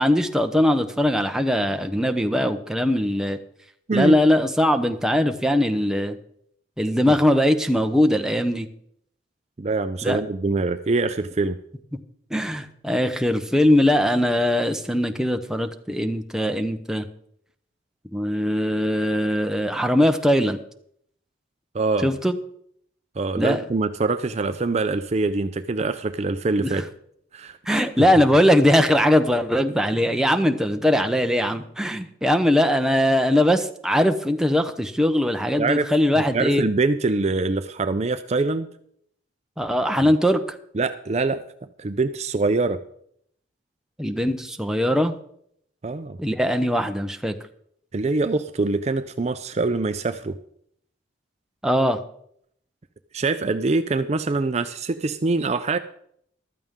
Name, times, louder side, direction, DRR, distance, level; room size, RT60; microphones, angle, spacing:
voice 1, 0.0-3.4 3.9-6.2 6.8-8.7 10.0-10.2 12.3-17.0 18.1-20.6 22.0-22.4 23.4-23.6 26.6-26.8 27.7-36.6 39.6-40.4 44.0-45.1 46.2-47.3 51.6-52.0, left 1 dB, 5° right, 6 dB, 0.7 m, -21 dB
voice 2, 9.6-11.6 21.7-22.1 23.2-26.8 27.3-27.8 35.6-35.9 36.3-38.7 40.0-40.1 40.7-41.4 41.8-42.8 45.8-46.2 47.9-50.4 53.1-55.8, right 3 dB, 35° right, 10 dB, 0.5 m, -24 dB
14.5 x 12.5 x 3.7 m, 0.68 s
head